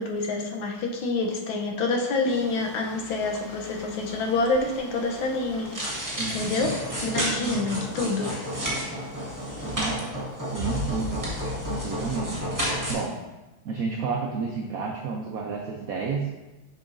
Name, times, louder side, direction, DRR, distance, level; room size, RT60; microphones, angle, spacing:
voice 1, 0.0-6.8 7.0-8.5, left 3 dB, 80° left, 1 dB, 1.6 m, -27 dB
sound 1, 2.3-7.2, equal, 25° left, 0.9 m, -44 dB
sound 2, 5.7-12.9, equal, 10° right, 1.2 m, -31 dB
voice 2, 6.2-6.7 7.4-7.8 9.7-10.1 10.5-11.2 11.7-12.4 12.9-13.1 13.6-16.3, right 5 dB, 90° right, 1 dB, 0.7 m, -31 dB
6.9 x 5.5 x 2.6 m, 1.1 s
omnidirectional pair, 2.2 m